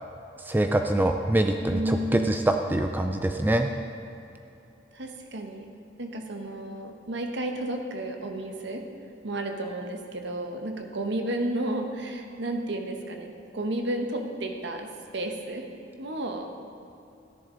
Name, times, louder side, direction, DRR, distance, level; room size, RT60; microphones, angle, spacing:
voice 1, 0.4-3.7, right 1 dB, 10° right, 5 dB, 0.3 m, -24 dB
voice 2, 1.7-2.5 4.9-5.7 6.0-8.9 9.2-15.6 16.0-16.5, right 1 dB, 65° right, 4 dB, 1.1 m, -32 dB
13.5 x 10.5 x 3.8 m, 2.8 s
head